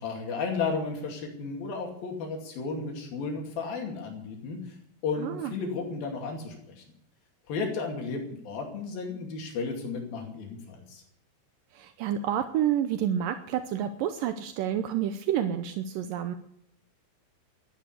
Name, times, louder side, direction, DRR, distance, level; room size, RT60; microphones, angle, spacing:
voice 1, 0.0-4.7 5.0-6.8 7.5-11.0, left 4 dB, 90° left, 2 dB, 4.4 m, -33 dB
voice 2, 5.2-5.5 11.7-16.4, right 10 dB, 80° right, 8 dB, 2.4 m, -29 dB
14.5 x 10.5 x 8.2 m, 0.69 s
omnidirectional pair, 4.1 m